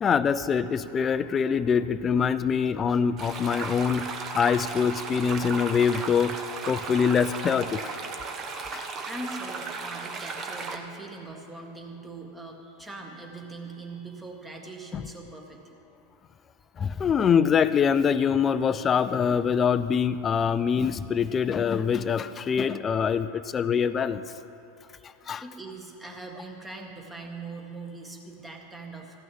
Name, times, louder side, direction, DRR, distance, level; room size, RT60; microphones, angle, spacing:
voice 1, 0.0-6.4 6.7-8.0 8.5-8.8 14.9-15.0 16.8-24.2 25.3-25.4, left 7 dB, 30° left, 13 dB, 0.4 m, -24 dB
sound 1, 3.2-10.8, right 4 dB, 35° right, 1.1 m, -35 dB
voice 2, 9.1-15.8 25.0-29.2, right 3 dB, 10° right, 1 dB, 1.8 m, -41 dB
14.0 x 6.1 x 8.6 m, 2.9 s
hypercardioid pair, 90°, 0 cm